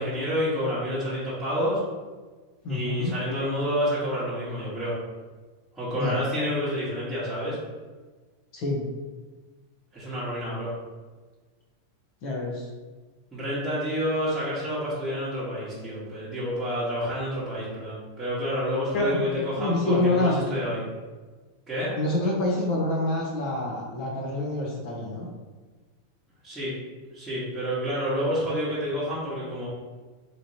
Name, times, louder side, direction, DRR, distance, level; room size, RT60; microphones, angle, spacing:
voice 1, 0.0-1.8 2.7-5.0 5.7-7.6 9.9-10.7 13.3-20.8 21.7-21.9 26.4-26.7 27.1-29.7, equal, 5° right, -12 dB, 1.1 m, -29 dB
voice 2, 2.6-3.1 5.9-6.2 8.5-8.8 12.2-12.7 18.9-19.3 19.6-20.6 22.0-25.3, left 2 dB, 55° left, -2 dB, 0.8 m, -27 dB
3.0 x 2.7 x 2.7 m, 1.3 s
supercardioid pair, 125°, 0 cm